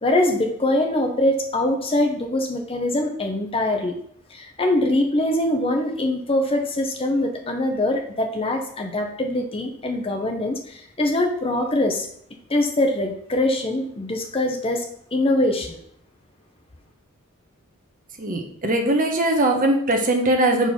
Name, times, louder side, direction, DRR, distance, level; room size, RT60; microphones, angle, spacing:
voice 1, 0.0-3.9 4.3-12.1 12.5-14.8 15.1-15.8, left 1 dB, 25° left, 3 dB, 0.8 m, -23 dB
voice 2, 18.2-20.7, right 1 dB, 40° right, 3 dB, 1.2 m, -20 dB
5.3 x 4.6 x 6.0 m, 0.66 s
head